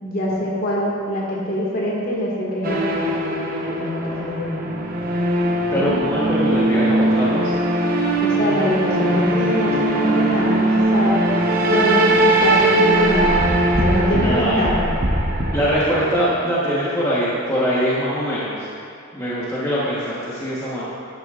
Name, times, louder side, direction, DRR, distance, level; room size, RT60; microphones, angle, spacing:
voice 1, 0.0-4.6 5.7-5.9 8.2-11.3 11.7-13.5 13.8-14.9, equal, 45° left, -5 dB, 2.0 m, -24 dB
sound 1, 2.6-16.1, right 1 dB, 40° right, 0.9 m, -20 dB
voice 2, 5.7-7.6 14.1-14.6 15.5-18.7 19.1-20.8, equal, 15° left, -9 dB, 1.2 m, -22 dB
11.5 x 10.5 x 2.5 m, 2.4 s
head